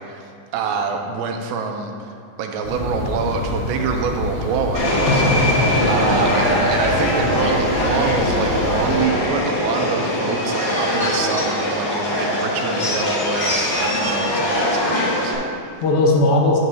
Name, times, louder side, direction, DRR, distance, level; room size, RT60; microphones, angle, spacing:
voice 1, 0.0-5.2 5.9-15.8, right 5 dB, 85° right, 4 dB, 2.5 m, -26 dB
sound 1, 2.6-9.0, left 1 dB, 30° left, 1.0 m, -27 dB
Subway metro underground, 4.7-15.3, left 1 dB, 50° left, 1.4 m, -21 dB
voice 2, 5.1-6.3 15.8-16.6, left 2 dB, 75° left, -1 dB, 2.6 m, -19 dB
9.7 x 7.7 x 2.7 m, 2.3 s
omnidirectional pair, 4.3 m